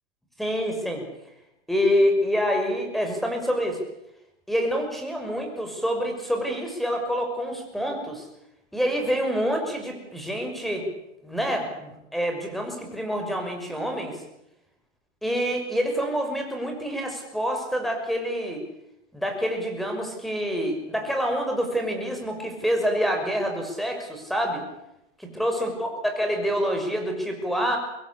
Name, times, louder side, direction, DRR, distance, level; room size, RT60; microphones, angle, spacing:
voice 1, 0.4-1.0 1.7-3.8 4.5-8.2 8.7-10.9 11.2-14.2 15.2-18.7 19.1-24.7 25.2-27.8, equal, ahead, 3 dB, 6.0 m, -27 dB
25.0 x 21.0 x 8.5 m, 0.87 s
hypercardioid pair, 125°, 35 cm